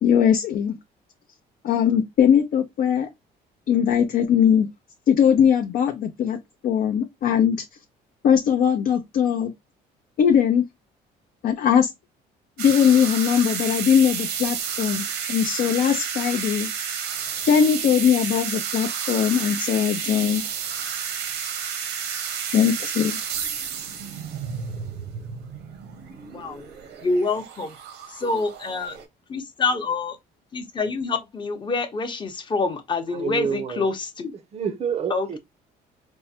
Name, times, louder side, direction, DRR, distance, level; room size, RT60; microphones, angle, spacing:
voice 1, 0.0-0.8 1.6-3.1 3.7-4.7 5.1-6.4 6.6-7.6 8.2-9.5 10.2-10.6 11.4-11.9 12.6-16.7 17.5-20.4 22.5-23.2, left 8 dB, 60° left, 0.6 m, -20 dB
sound 1, 12.6-29.1, right 7 dB, 85° right, 0.9 m, -31 dB
voice 2, 26.3-26.7 27.0-27.7 28.2-29.0 29.3-30.2 30.5-34.3 35.1-35.4, left 3 dB, 30° left, 0.8 m, -26 dB
voice 3, 33.1-33.9 34.5-35.4, right 7 dB, 40° right, 0.5 m, -28 dB
4.5 x 2.1 x 2.8 m
cardioid pair, 110°, 17 cm